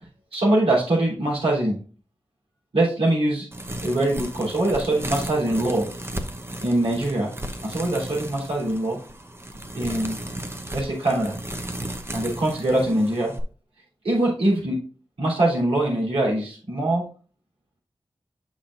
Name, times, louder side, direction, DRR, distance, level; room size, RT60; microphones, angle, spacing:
voice 1, 0.3-1.8 2.7-3.5 3.8-5.9 6.6-7.3 7.6-9.0 9.7-10.2 10.7-11.4 12.1-13.3 14.0-14.8 15.2-17.0, right 1 dB, 90° right, -6 dB, 3.6 m, -23 dB
sound 1, 3.5-13.4, right 1 dB, 25° right, 0.9 m, -35 dB
7.1 x 6.0 x 2.5 m, 0.39 s
cardioid pair, 40°, 9 cm